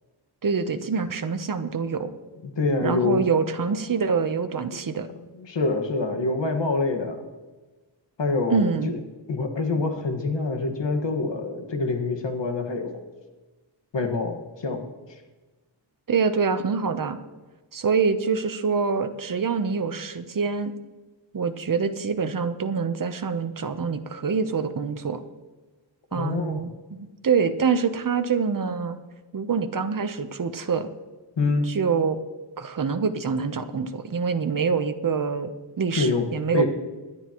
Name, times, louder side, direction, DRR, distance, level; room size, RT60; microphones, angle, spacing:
voice 1, 0.4-2.1 2.8-5.1 8.5-8.9 16.1-17.2 17.7-20.7 21.3-25.2 26.1-29.0 29.3-30.9 31.7-32.2 32.6-36.7, right 5 dB, 45° right, 8 dB, 1.0 m, -25 dB
voice 2, 2.4-3.2 5.1-7.3 8.2-9.0 9.3-13.0 13.9-14.9 26.1-26.6 31.4-31.7 36.0-36.7, left 3 dB, 65° left, 4 dB, 1.8 m, -26 dB
26.0 x 10.5 x 3.1 m, 1.3 s
wide cardioid pair, 125°, 47 cm